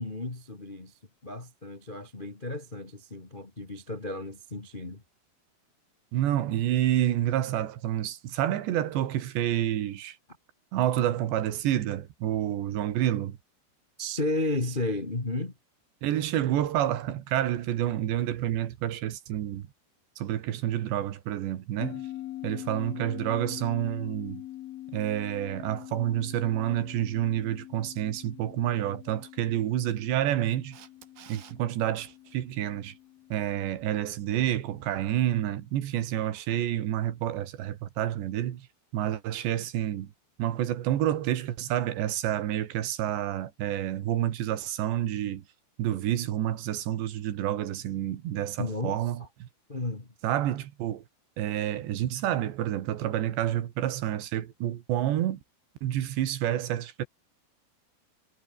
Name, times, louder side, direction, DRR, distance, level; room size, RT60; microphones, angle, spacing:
voice 1, 0.0-5.0 14.0-15.5 48.6-49.3 49.7-50.1, left 2 dB, 30° left, 0.8 m, -33 dB
voice 2, 6.1-10.2 10.7-13.4 16.0-19.7 20.2-22.1 22.4-24.4 24.9-30.8 31.3-33.0 33.3-38.7 38.9-40.1 40.4-45.4 45.8-49.5 50.2-51.0 51.4-55.4 55.8-57.1, right 12 dB, 80° right, 4.1 m, -29 dB
sound 1, 21.8-34.6, left 14 dB, 70° left, 2.7 m, -43 dB
Camera, 30.7-31.6 38.3-38.4, right 11 dB, 65° right, 3.4 m, -50 dB
omnidirectional pair, 5.0 m